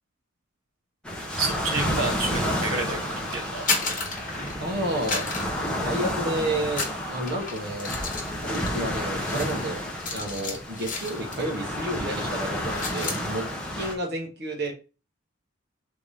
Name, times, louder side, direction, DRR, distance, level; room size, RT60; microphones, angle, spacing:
sound 1, 1.0-13.9, equal, 5° left, 0.7 m, -31 dB
voice 1, 1.4-3.6, right 3 dB, 90° right, 2 dB, 1.3 m, -29 dB
sound 2, 3.4-4.7 5.0-6.3 6.7-11.6 11.9-12.1 12.4-13.2, left 4 dB, 40° left, 1.1 m, -33 dB
voice 2, 4.6-7.9 8.4-13.5 13.7-14.7, right 1 dB, 50° right, 0 dB, 1.0 m, -31 dB
3.6 x 2.7 x 4.7 m, 0.31 s
head